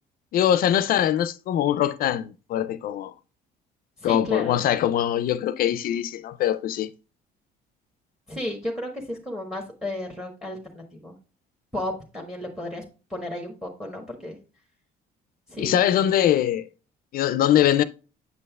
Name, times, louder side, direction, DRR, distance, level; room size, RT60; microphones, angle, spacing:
voice 1, 0.3-3.1 4.0-6.9 15.6-16.7 17.1-17.8, left 11 dB, 60° left, 0.4 m, -22 dB
voice 2, 4.0-4.6 8.3-11.1 11.7-12.8 13.1-14.4 15.5-16.1, left 1 dB, 5° right, 1.2 m, -33 dB
8.0 x 5.4 x 2.3 m
cardioid pair, 110°, 17 cm